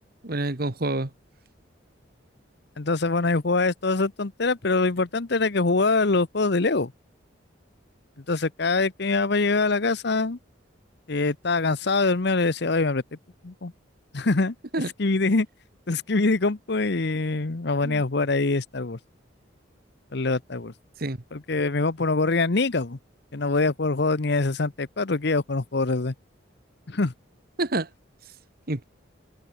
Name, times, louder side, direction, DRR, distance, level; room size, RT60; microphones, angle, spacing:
voice 1, 0.2-1.1 14.7-14.9 17.8-18.0 21.0-21.2 27.6-27.9 28.7-28.8, right 2 dB, 50° right, 1.5 m, -27 dB
voice 2, 2.8-6.9 8.3-10.4 11.1-13.0 13.4-13.7 14.1-14.5 15.0-15.5 15.9-19.0 20.1-20.7 21.3-23.0 23.3-26.1 26.9-27.1, left 3 dB, 55° left, 0.9 m, -24 dB
head